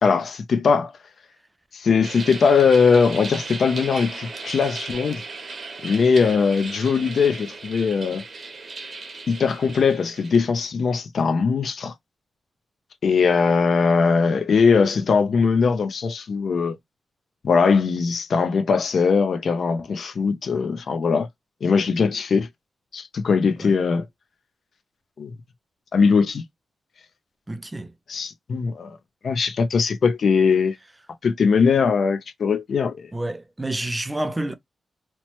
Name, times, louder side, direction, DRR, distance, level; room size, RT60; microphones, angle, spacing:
voice 1, 0.0-0.9 1.7-5.2 5.8-8.2 9.3-11.9 13.0-16.8 17.4-21.3 21.6-22.5 22.9-24.1 25.2-25.3 25.9-26.4 28.1-29.0 29.2-30.7 31.2-33.1, left 5 dB, 60° left, 0.4 m, -20 dB
sound 1, 2.0-10.4, right 4 dB, 40° right, 0.7 m, -36 dB
voice 2, 27.5-27.9 33.1-34.6, right 1 dB, 15° right, 0.3 m, -29 dB
2.9 x 2.0 x 2.9 m
wide cardioid pair, 135°, 0 cm